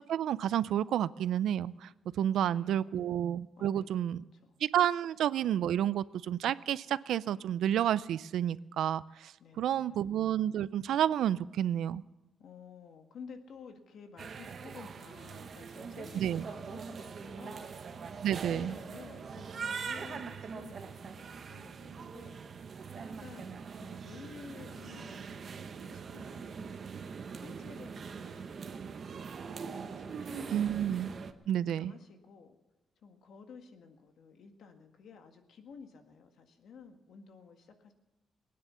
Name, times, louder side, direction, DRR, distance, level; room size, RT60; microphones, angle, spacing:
voice 1, 0.1-1.9 2.2-4.2 4.6-12.0 16.2-16.4 18.2-18.8 30.5-31.1 31.5-31.9, right 10 dB, 85° right, 18 dB, 0.4 m, -30 dB
voice 2, 2.3-3.1 3.6-4.6 9.4-10.1 12.4-18.1 18.4-22.6 23.0-26.7 27.4-30.8 31.5-32.6 33.0-37.9, left 5 dB, 70° left, 6 dB, 1.8 m, -53 dB
sound 1, 14.2-31.3, right 5 dB, 45° right, 0.9 m, -42 dB
19.5 x 9.7 x 6.8 m, 1.1 s
cardioid pair, 135°, 0 cm